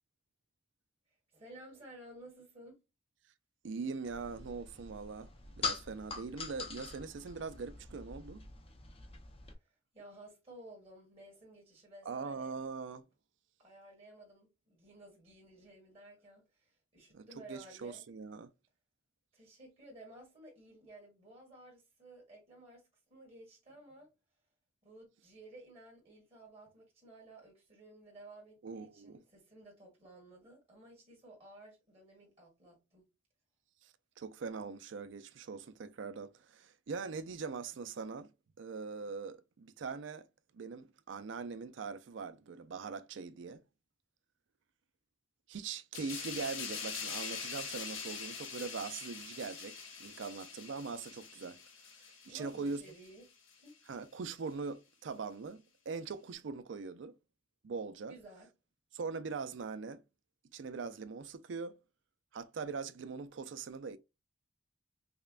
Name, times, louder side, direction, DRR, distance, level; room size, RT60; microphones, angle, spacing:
voice 1, 1.1-2.8 9.6-12.5 13.6-18.1 19.3-24.1 24.8-33.1 52.3-53.8 58.1-58.5, right 1 dB, 30° right, 1.8 m, -55 dB
voice 2, 3.6-5.3 5.6-8.4 12.1-13.0 17.1-18.5 28.6-29.2 33.8-38.3 38.6-40.3 40.5-43.6 45.5-51.6 52.3-52.8 53.9-57.2 57.6-58.2 58.9-60.0 60.5-61.8 62.3-64.0, right 4 dB, 75° right, 0.4 m, -42 dB
sound 1, 4.1-9.6, left 4 dB, 30° left, 0.6 m, -43 dB
sound 2, 45.9-53.1 53.5-53.7, left 5 dB, 85° left, 1.0 m, -44 dB
5.4 x 2.2 x 2.4 m
head